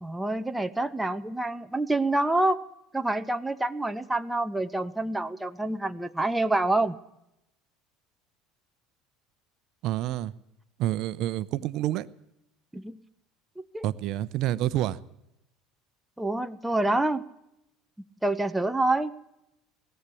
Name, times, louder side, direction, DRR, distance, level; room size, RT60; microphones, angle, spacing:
voice 1, 0.0-2.6 2.9-7.0 12.7-13.0 13.6-13.9 16.2-17.3 18.2-19.1, right 2 dB, 5° right, 9 dB, 0.9 m, -27 dB
voice 2, 9.8-10.3 10.8-12.1 13.8-15.0, right 13 dB, 55° right, 15 dB, 0.8 m, -28 dB
21.0 x 15.0 x 8.5 m, 0.85 s
supercardioid pair, 125°, 0 cm